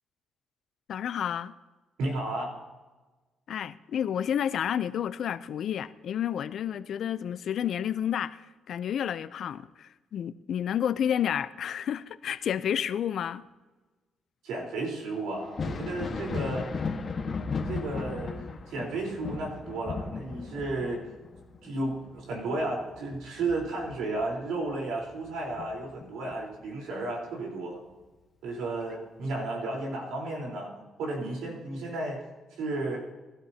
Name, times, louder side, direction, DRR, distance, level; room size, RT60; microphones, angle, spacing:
voice 1, 0.9-1.5 3.5-8.4 8.7-13.4, left 9 dB, 65° left, 0.5 m, -30 dB
voice 2, 2.0-2.5 14.4-16.7 17.7-21.0 21.6-27.8 28.4-30.7 31.0-32.2 32.6-33.0, right 2 dB, 90° right, 4.1 m, -33 dB
Thunder, 15.4-24.7 25.1-26.3 27.9-28.0 28.8-28.9, left 4 dB, 45° left, 1.5 m, -36 dB
20.5 x 12.5 x 2.9 m
cardioid pair, 90°, 0 cm